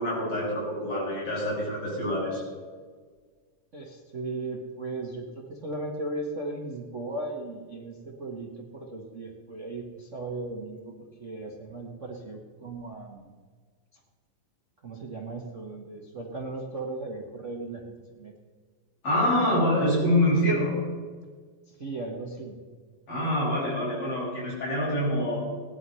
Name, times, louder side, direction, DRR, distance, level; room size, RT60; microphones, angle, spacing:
voice 1, 0.0-2.4 19.0-20.8 23.1-25.4, left 1 dB, 40° left, -6 dB, 6.9 m, -25 dB
voice 2, 3.7-10.9 11.2-13.3 13.9-14.0 14.8-18.3 21.7-22.6, right 2 dB, 60° right, -1 dB, 0.7 m, -37 dB
17.5 x 10.5 x 5.6 m, 1.5 s
omnidirectional pair, 3.9 m